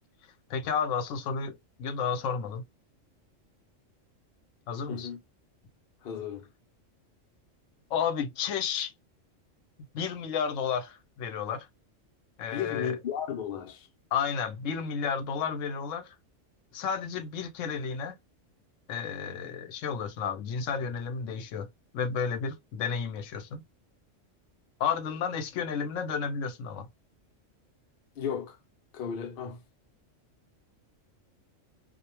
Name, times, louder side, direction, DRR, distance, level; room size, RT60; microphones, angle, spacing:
voice 1, 0.5-2.6 4.7-5.1 7.9-8.9 9.9-11.7 12.4-13.0 14.1-16.1 16.7-18.2 18.9-21.7 21.9-23.6 24.8-26.9, left 6 dB, 80° left, 0.9 m, -32 dB
voice 2, 4.9-5.2 6.0-6.4 12.5-13.9 28.2-28.6 28.9-29.6, left 8 dB, 55° left, 0.6 m, -34 dB
2.4 x 2.1 x 2.8 m
omnidirectional pair, 1.3 m